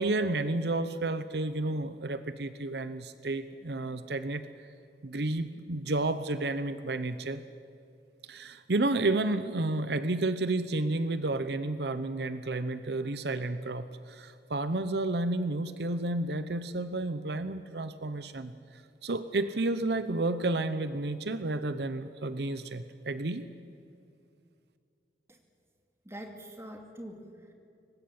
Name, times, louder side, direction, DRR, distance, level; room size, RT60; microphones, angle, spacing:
voice 1, 0.0-4.5 5.0-7.4 8.3-23.4, right 2 dB, 70° right, 12 dB, 0.9 m, -31 dB
voice 2, 26.0-27.5, equal, 15° right, 4 dB, 2.5 m, -44 dB
24.0 x 19.5 x 8.7 m, 2.5 s
head